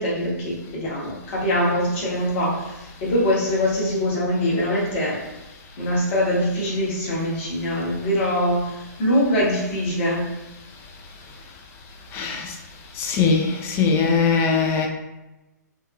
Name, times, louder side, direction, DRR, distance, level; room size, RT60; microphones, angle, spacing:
voice 1, 0.0-5.2 5.8-10.3, equal, 40° left, -5 dB, 1.1 m, -23 dB
voice 2, 12.1-12.5 13.0-14.9, left 5 dB, 25° left, 2 dB, 0.4 m, -20 dB
3.4 x 2.1 x 2.3 m, 1.0 s
figure-of-eight pair, 120°, 10 cm